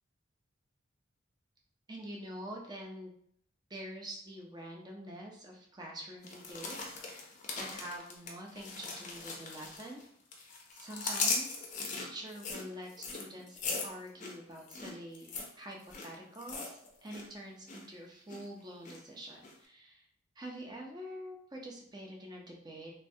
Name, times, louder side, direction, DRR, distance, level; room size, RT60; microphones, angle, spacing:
voice 1, 1.9-3.1 3.7-10.0 10.4-11.6 11.9-20.0 20.4-22.9, right 1 dB, 20° right, 0 dB, 0.5 m, -46 dB
sound 1, 6.2-10.0 10.3-17.3 17.5-17.9 18.3-19.0 19.4-19.5, left 4 dB, 40° left, 0.5 m, -39 dB
3.1 x 2.2 x 2.6 m, 0.66 s
head